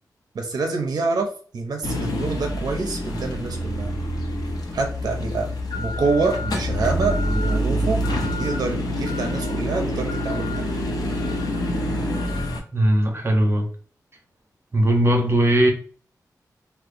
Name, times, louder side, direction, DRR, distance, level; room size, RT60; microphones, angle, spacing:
voice 1, 0.3-4.0 4.7-8.0 8.4-10.8, right 4 dB, 75° right, 0.5 m, -26 dB
sound 1, 1.8-12.6, left 1 dB, 75° left, 0.5 m, -26 dB
voice 2, 12.7-13.7 14.7-15.7, right 1 dB, 40° right, 0.7 m, -19 dB
2.8 x 2.0 x 2.4 m
wide cardioid pair, 85°, 7 cm